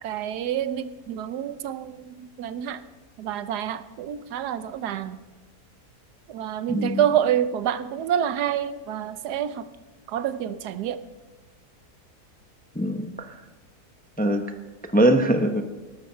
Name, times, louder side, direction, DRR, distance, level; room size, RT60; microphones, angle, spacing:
voice 1, 0.0-2.8 3.2-5.2 6.3-9.7 10.1-11.0, right 9 dB, 90° right, 13 dB, 1.3 m, -27 dB
voice 2, 6.7-7.0 12.7-13.4 14.2-14.4 14.9-15.6, right 1 dB, 10° left, 6 dB, 0.5 m, -22 dB
19.0 x 12.0 x 4.4 m, 1.3 s
omnidirectional pair, 1.7 m